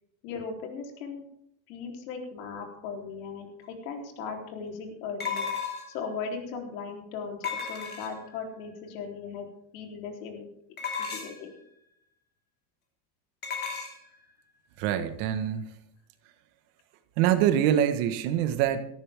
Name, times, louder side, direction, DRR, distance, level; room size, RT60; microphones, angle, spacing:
voice 1, 0.2-1.2 1.7-5.5 5.9-7.4 7.7-9.5 9.7-10.5 11.1-11.6, left 5 dB, 70° left, 2 dB, 3.8 m, -38 dB
sound 1, 3.6-3.7 5.2-6.0 7.4-8.3 10.8-11.5 13.4-13.9, left 6 dB, 25° left, 2.7 m, -33 dB
voice 2, 14.8-15.7 17.2-18.8, right 10 dB, 55° right, 9 dB, 1.6 m, -25 dB
17.5 x 14.0 x 3.6 m, 0.75 s
cardioid pair, 170°, 42 cm